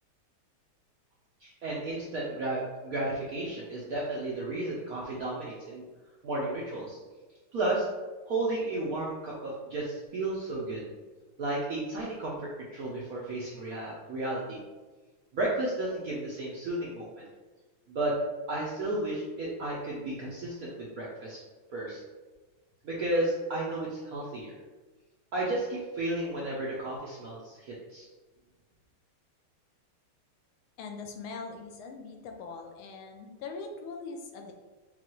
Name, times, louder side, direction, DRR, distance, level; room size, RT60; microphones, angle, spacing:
voice 1, 1.4-5.8 6.2-7.0 7.5-7.9 8.3-10.9 11.4-14.6 15.3-17.1 17.9-18.1 18.5-21.4 21.7-22.0 22.8-24.5 25.3-28.1, right 2 dB, 70° right, -6 dB, 0.8 m, -33 dB
voice 2, 30.8-34.5, left 4 dB, 80° left, 3 dB, 1.4 m, -41 dB
5.8 x 2.3 x 3.0 m, 1.3 s
omnidirectional pair, 2.3 m